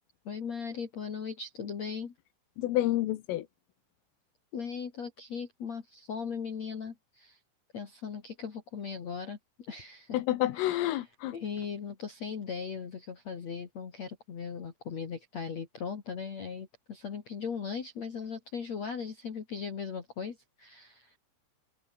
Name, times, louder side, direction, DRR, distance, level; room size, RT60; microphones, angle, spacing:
voice 1, 0.2-2.1 4.5-7.4 7.7-9.4 9.7-10.2 10.6-10.9 11.3-21.1, left 6 dB, 45° left, 2.7 m, -38 dB
voice 2, 2.6-3.5 10.1-11.4, left 15 dB, 80° left, 4.0 m, -29 dB
omnidirectional pair, 5.8 m